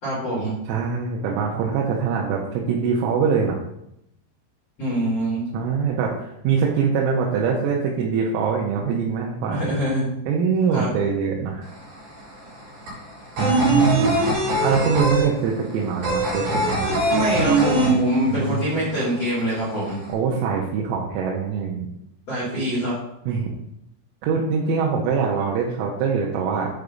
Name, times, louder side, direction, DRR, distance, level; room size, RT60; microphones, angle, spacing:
voice 1, 0.0-0.6 4.8-5.5 9.5-10.1 10.7-10.9 17.1-20.0 22.3-23.0, equal, 35° left, -12 dB, 3.4 m, -24 dB
voice 2, 0.7-3.6 5.5-9.8 10.3-11.7 13.4-14.2 14.6-17.0 18.3-18.7 20.1-21.9 23.3-23.5 24.2-26.7, right 6 dB, 85° right, -2 dB, 3.5 m, -23 dB
sound 1, 11.6-11.7 12.0-18.6 18.8-18.9 19.2-20.0, right 2 dB, 50° right, 5.1 m, -21 dB
sound 2, 13.4-15.2 16.5-17.5, left 9 dB, 80° left, 2.5 m, -35 dB
8.3 x 4.7 x 5.2 m, 0.81 s
omnidirectional pair, 5.9 m